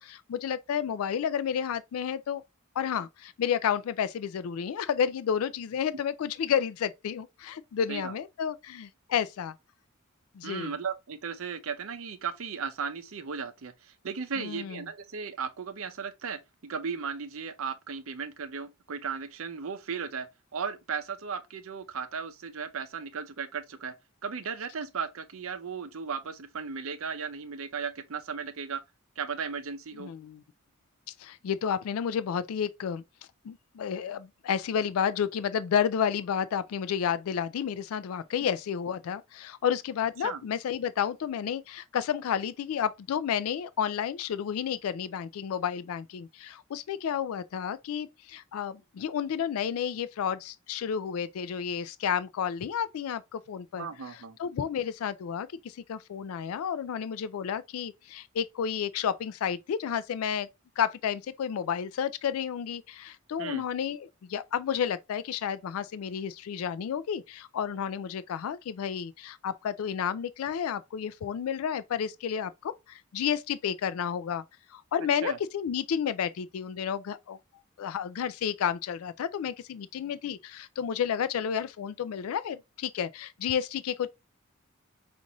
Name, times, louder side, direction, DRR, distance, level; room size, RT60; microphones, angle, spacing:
voice 1, 0.0-2.4 2.8-9.5 10.3-10.7 14.4-14.8 30.0-30.4 31.2-33.0 33.4-53.9 54.4-60.5 60.8-74.4 74.7-77.4 77.8-84.1, left 8 dB, 80° left, 0.3 m, -31 dB
voice 2, 10.4-23.9 24.2-28.8 29.2-30.1 38.4-38.5 40.2-40.4 53.7-54.4 63.4-63.7 75.1-75.4, right 6 dB, 70° right, 0.6 m, -36 dB
5.2 x 2.5 x 2.9 m
head